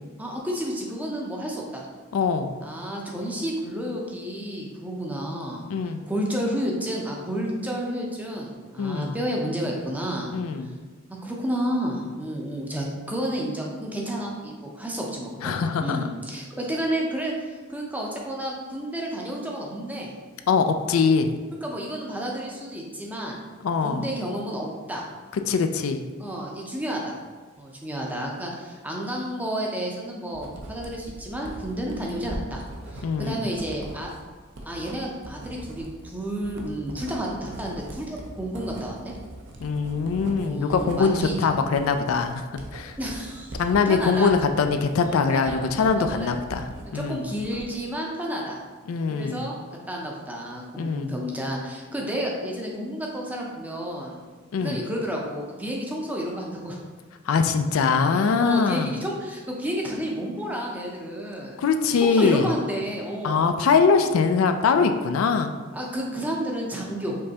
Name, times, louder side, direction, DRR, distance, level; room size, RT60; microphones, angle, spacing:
voice 1, 0.2-1.9 2.6-5.6 6.1-10.3 11.2-20.1 21.6-23.4 23.8-25.1 26.2-27.1 27.6-32.6 32.9-34.1 34.7-39.1 40.4-41.4 43.0-44.3 45.0-46.3 46.9-48.6 49.1-49.6 49.9-54.2 54.6-56.8 58.4-61.6 62.0-63.5 65.7-67.2, equal, 10° right, -1 dB, 0.6 m, -31 dB
voice 2, 2.1-2.5 5.7-6.0 8.8-9.2 10.3-10.7 15.4-16.0 20.5-21.3 23.6-24.1 25.5-26.0 33.0-33.4 39.6-42.4 42.7-42.9 43.6-47.2 48.9-49.4 50.8-51.1 54.5-54.8 57.3-58.9 61.6-62.5 63.2-65.5, left 5 dB, 75° left, 7 dB, 0.3 m, -22 dB
Writing, 30.3-46.9 47.2-47.9, right 1 dB, 55° right, 0.6 m, -40 dB
5.3 x 3.3 x 2.8 m, 1.4 s
head